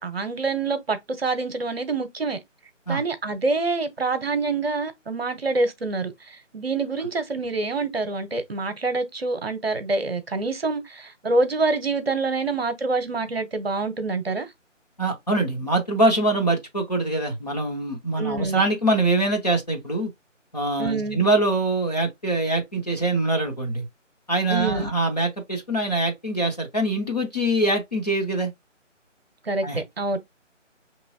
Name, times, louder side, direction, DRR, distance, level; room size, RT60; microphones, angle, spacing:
voice 1, 0.0-2.4 2.9-14.5 18.2-18.6 20.8-21.2 24.5-24.9 29.4-30.2, right 3 dB, 50° right, 0.8 m, -26 dB
voice 2, 15.0-20.1 20.5-23.8 24.3-28.5 29.6-29.8, right 2 dB, 35° left, 0.8 m, -24 dB
5.4 x 3.0 x 2.6 m
figure-of-eight pair, 170°, 38 cm